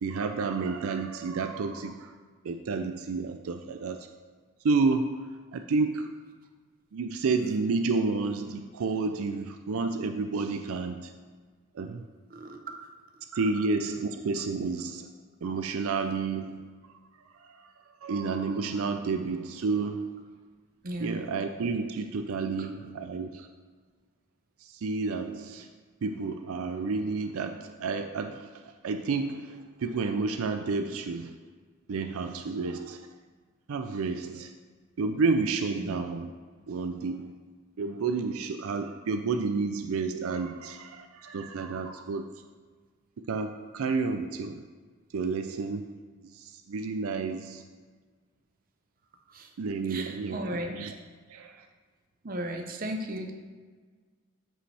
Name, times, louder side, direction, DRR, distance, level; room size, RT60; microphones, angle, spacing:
voice 1, 0.0-2.1 2.4-4.0 4.6-6.1 6.9-11.1 11.8-12.1 13.3-15.1 15.4-16.6 17.6-17.7 18.0-20.2 21.0-22.7 23.0-23.5 24.7-25.7 26.0-31.4 31.9-33.1 33.7-34.5 35.0-36.3 36.7-37.3 37.8-42.3 43.3-44.6 45.1-46.0 46.3-47.6 49.6-50.4 50.7-50.9 51.3-51.6, right 4 dB, 75° right, 7 dB, 0.4 m, -30 dB
voice 2, 12.3-12.6 20.8-21.3 22.4-22.7 35.1-35.2 35.8-36.0 49.3-49.5 49.9-50.7 52.2-53.3, right 1 dB, 40° right, 4 dB, 0.7 m, -36 dB
13.0 x 5.1 x 3.4 m, 1.5 s
head